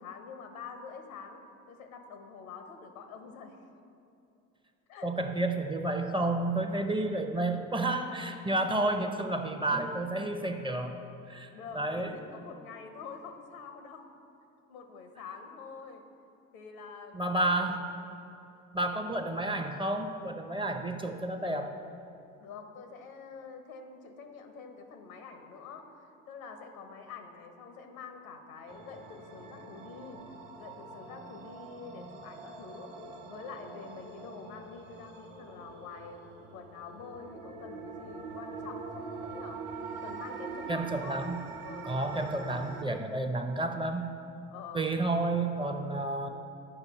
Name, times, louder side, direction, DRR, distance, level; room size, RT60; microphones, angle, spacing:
voice 1, 0.0-1.4 1.7-3.7 4.9-5.1 8.8-9.1 11.5-14.1 14.7-16.0 16.5-17.7 22.4-32.9 33.2-36.2 36.5-39.6 40.0-41.2 41.6-42.7 44.5-44.9, left 5 dB, 90° left, 6 dB, 0.8 m, -46 dB
voice 2, 5.0-11.0 11.3-12.2 17.1-17.8 18.7-21.7 40.7-41.4 41.8-44.1 44.7-46.3, right 2 dB, 15° right, 6 dB, 0.5 m, -31 dB
sound 1, 28.7-42.8, right 4 dB, 70° right, 1.0 m, -44 dB
9.7 x 5.2 x 4.1 m, 2.7 s
hypercardioid pair, 60°, 41 cm